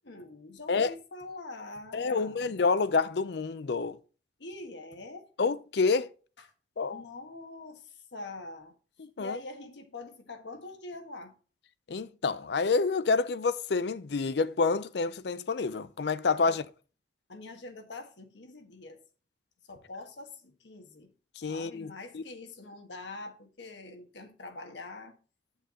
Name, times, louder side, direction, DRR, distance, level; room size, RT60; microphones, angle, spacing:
voice 1, 0.0-2.5 4.4-5.3 6.4-6.5 6.9-11.4 16.4-16.6 17.3-19.0 19.7-21.1 21.5-25.2, left 2 dB, 90° left, 1.4 m, -44 dB
voice 2, 1.9-4.0 5.4-6.1 6.8-7.0 9.0-9.4 11.9-16.6 21.4-22.2, left 4 dB, 70° left, 0.5 m, -28 dB
8.5 x 7.0 x 3.7 m
head